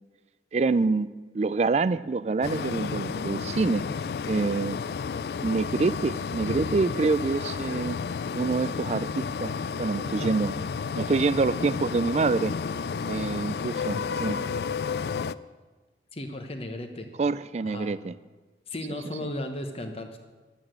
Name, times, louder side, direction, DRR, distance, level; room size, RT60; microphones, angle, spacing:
voice 1, 0.5-1.1 1.3-3.8 4.2-4.8 5.4-8.0 8.3-10.5 10.9-12.5 13.1-14.4 17.2-18.2, right 3 dB, 35° right, 17 dB, 0.3 m, -26 dB
sound 1, 2.4-15.3, left 5 dB, 60° left, 0.3 m, -31 dB
voice 2, 16.1-17.1 17.6-17.9 18.7-20.2, left 1 dB, 30° left, 5 dB, 1.0 m, -35 dB
11.0 x 8.7 x 7.5 m, 1.3 s
head